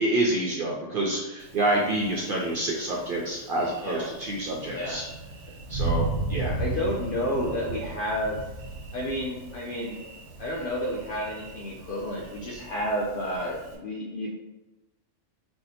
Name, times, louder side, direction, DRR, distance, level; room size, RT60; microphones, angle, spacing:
voice 1, 0.0-5.0 5.7-6.6, right 1 dB, 65° right, -2 dB, 0.5 m, -27 dB
Thunder, 1.4-13.8, right 3 dB, 85° right, 1.0 m, -36 dB
voice 2, 4.7-5.0 6.6-8.4 8.9-10.0 10.4-14.4, equal, 60° left, -3 dB, 0.6 m, -31 dB
2.7 x 2.1 x 4.0 m, 1.0 s
omnidirectional pair, 1.3 m